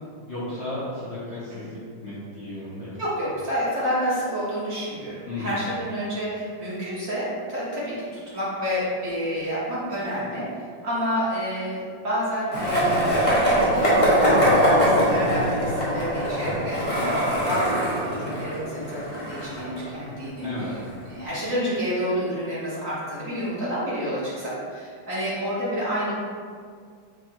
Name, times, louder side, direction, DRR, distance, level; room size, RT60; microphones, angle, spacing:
voice 1, 0.3-3.0 5.3-5.6 20.4-20.8, left 1 dB, 55° left, -9 dB, 0.8 m, -34 dB
voice 2, 3.0-13.0 13.3-20.5 21.0-26.1, equal, 45° right, -9 dB, 1.5 m, -29 dB
Skateboard, 12.5-20.5, equal, 30° left, 1.0 m, -22 dB
5.1 x 2.3 x 4.5 m, 2.1 s
omnidirectional pair, 2.1 m